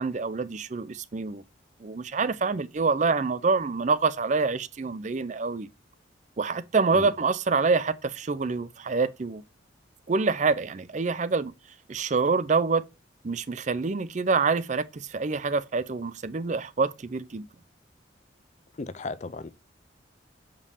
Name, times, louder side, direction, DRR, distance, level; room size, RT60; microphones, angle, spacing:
voice 1, 0.0-1.4 1.8-5.7 6.4-9.4 10.1-11.5 11.9-12.8 13.2-17.5, right 4 dB, 40° right, 0.5 m, -26 dB
voice 2, 18.8-19.5, left 3 dB, 35° left, 0.4 m, -35 dB
6.9 x 5.1 x 2.7 m
head